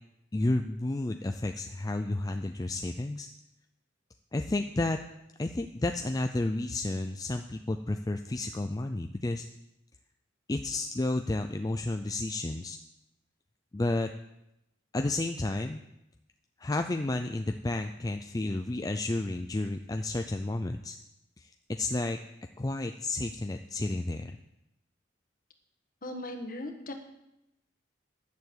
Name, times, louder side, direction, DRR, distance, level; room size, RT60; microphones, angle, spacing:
voice 1, 0.3-3.3 4.3-5.0 5.4-9.4 10.5-12.8 13.7-14.1 14.9-15.8 16.6-21.0 21.4-22.2 22.6-24.4, left 2 dB, 20° left, 6 dB, 0.4 m, -31 dB
voice 2, 26.0-26.9, left 1 dB, 45° left, 5 dB, 1.4 m, -38 dB
11.0 x 6.9 x 8.0 m, 0.87 s
head